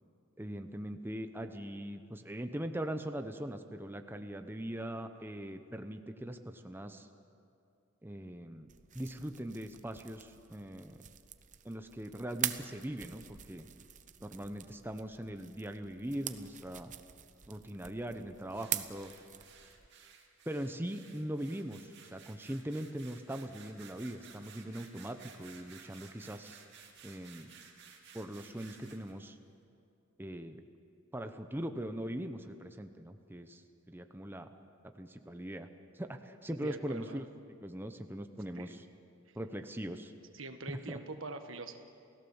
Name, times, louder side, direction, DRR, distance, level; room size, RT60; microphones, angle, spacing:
voice 1, 0.4-7.1 8.0-8.7 8.9-11.0 11.6-13.7 14.2-16.9 17.5-19.1 20.5-26.6 27.0-27.5 28.1-29.4 30.2-30.6 31.1-34.5 34.8-35.7 35.9-37.2 37.6-38.9 39.4-40.1 40.7-41.0, right 1 dB, 10° right, 7 dB, 0.9 m, -41 dB
sound 1, 8.7-19.9, right 11 dB, 40° right, 0.8 m, -44 dB
sound 2, 18.5-29.1, right 6 dB, 60° right, 2.4 m, -56 dB
voice 2, 36.6-37.2 38.6-38.7 40.3-41.8, right 3 dB, 85° right, 7 dB, 1.5 m, -43 dB
29.0 x 16.5 x 7.2 m, 2.5 s
head